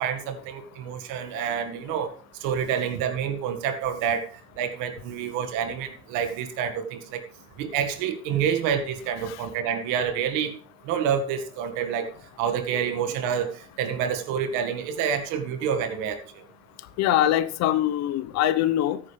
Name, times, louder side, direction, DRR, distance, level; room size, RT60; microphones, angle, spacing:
voice 1, 0.0-2.1 2.4-4.3 4.6-7.2 7.6-10.6 10.8-12.1 12.4-16.4, right 8 dB, 65° right, 1.9 m, -28 dB
voice 2, 17.0-19.0, left 12 dB, 50° left, 0.9 m, -23 dB
14.0 x 9.5 x 3.4 m
supercardioid pair, 115°, 33 cm